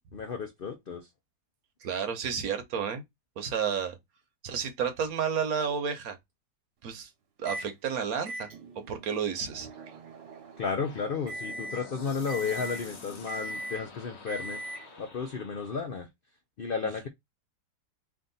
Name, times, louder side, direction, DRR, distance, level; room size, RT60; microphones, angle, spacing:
voice 1, 0.1-1.1 10.6-14.6 15.0-16.1 16.6-17.1, left 5 dB, 80° left, 0.5 m, -33 dB
voice 2, 1.8-3.0 3.4-4.0 4.4-6.2 6.8-7.1 7.4-8.5 8.9-9.7, right 7 dB, 65° right, 1.2 m, -31 dB
Microwave oven, 7.5-7.7 8.3-15.1, right 1 dB, 90° right, 1.5 m, -41 dB
sound 1, 10.8-15.9, left 4 dB, 45° left, 1.1 m, -48 dB
3.6 x 2.6 x 3.9 m
omnidirectional pair, 1.8 m